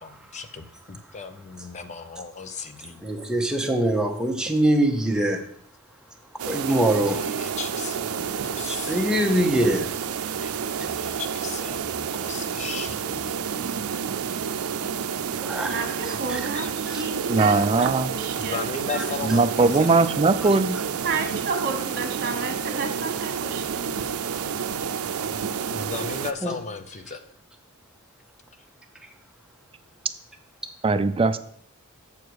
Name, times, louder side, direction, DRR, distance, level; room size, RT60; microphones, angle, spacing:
voice 1, 0.0-3.0 6.6-6.7 7.1-9.9 10.4-10.5 10.8-13.4 15.4-15.5 15.7-16.7 18.4-20.0 25.7-27.2, left 5 dB, 35° left, 10 dB, 0.6 m, -36 dB
voice 2, 3.0-5.4 6.4-7.2 8.7-9.9 15.4-15.8 16.1-16.4 16.9-17.1 18.9-19.0 20.4-20.5 26.4-26.5, right 1 dB, 5° right, 2 dB, 0.8 m, -23 dB
sound 1, 6.4-26.3, right 7 dB, 85° right, 0.5 m, -30 dB
voice 3, 15.7-19.2 21.0-24.0, right 4 dB, 45° right, 5 dB, 1.3 m, -32 dB
voice 4, 17.3-18.1 19.3-20.8 30.8-31.4, right 3 dB, 25° right, 10 dB, 0.4 m, -20 dB
7.1 x 6.6 x 4.6 m, 0.62 s
head